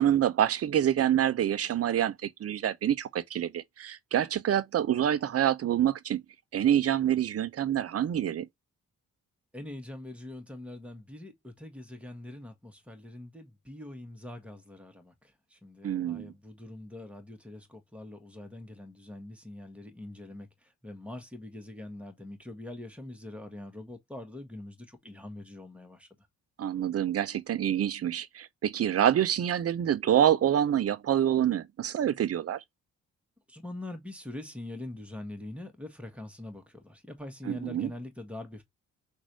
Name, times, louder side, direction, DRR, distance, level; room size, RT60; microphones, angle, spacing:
voice 1, 0.0-6.2 6.5-8.5 15.8-16.3 26.6-32.6 37.5-37.9, right 10 dB, 40° right, 0.7 m, -26 dB
voice 2, 9.5-26.1 33.5-38.6, left 1 dB, 5° right, 1.7 m, -43 dB
6.0 x 2.7 x 2.9 m
figure-of-eight pair, 40°, 38 cm